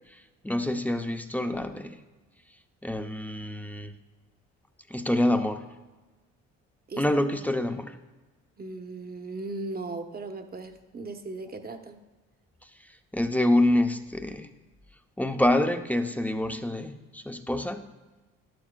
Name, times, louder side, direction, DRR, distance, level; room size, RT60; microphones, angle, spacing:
voice 1, 0.1-2.0 2.8-4.0 4.9-5.6 7.0-8.0 13.1-14.5 15.2-17.8, left 1 dB, 5° left, 7 dB, 0.6 m, -26 dB
voice 2, 8.6-12.0, right 3 dB, 30° right, 6 dB, 1.0 m, -37 dB
12.0 x 11.0 x 2.3 m, 1.2 s
cardioid pair, 90°, 30 cm